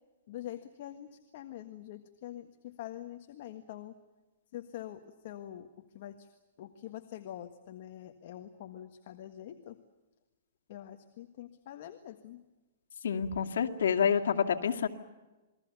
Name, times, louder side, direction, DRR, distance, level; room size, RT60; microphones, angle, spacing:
voice 1, 0.3-3.9 4.5-6.3 6.6-9.8 10.7-12.4, left 12 dB, 45° left, 6 dB, 1.6 m, -45 dB
voice 2, 13.0-14.9, left 7 dB, 80° left, 5 dB, 2.3 m, -28 dB
28.5 x 21.5 x 6.9 m, 1.1 s
hypercardioid pair, 170°, 0 cm